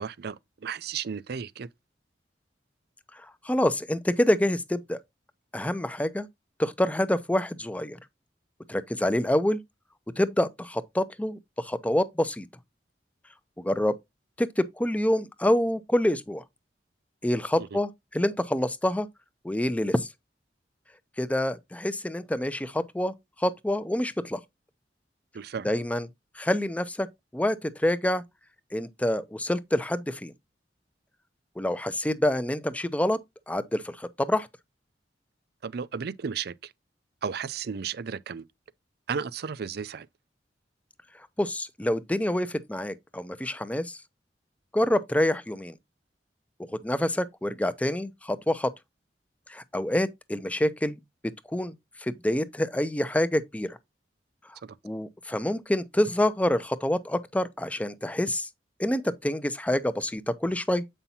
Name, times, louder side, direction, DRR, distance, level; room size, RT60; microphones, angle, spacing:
voice 1, 0.0-1.7 17.6-17.8 25.3-25.7 35.6-36.7 37.2-38.5 39.1-40.1 54.6-54.8, right 6 dB, 65° right, 0.5 m, -34 dB
voice 2, 3.4-5.0 5.5-6.3 6.6-8.0 8.7-9.6 10.2-12.5 13.6-13.9 14.4-16.4 17.2-19.1 19.4-20.1 21.2-24.4 25.6-26.1 26.4-27.1 27.3-28.2 28.7-30.3 31.6-33.2 33.5-34.5 41.4-44.0 44.7-45.7 46.7-48.7 49.5-51.0 51.5-51.7 52.0-53.8 54.8-58.5 58.8-60.8, left 1 dB, 10° left, 0.5 m, -27 dB
8.1 x 5.5 x 2.8 m
head